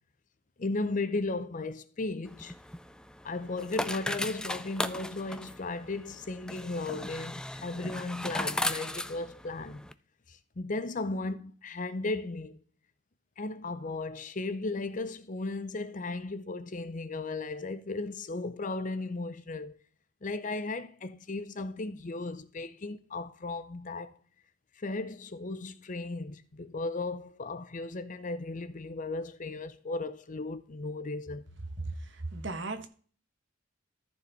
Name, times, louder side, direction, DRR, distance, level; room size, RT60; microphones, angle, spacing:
voice 1, 0.6-2.5 3.2-9.9 10.3-12.6 13.4-19.8 20.2-24.2 24.8-31.5, left 3 dB, 40° left, 0.6 m, -36 dB
sound 1, 2.3-9.9, left 1 dB, 5° left, 0.3 m, -37 dB
voice 2, 32.1-32.9, right 3 dB, 60° right, 1.2 m, -36 dB
14.0 x 4.8 x 4.1 m
head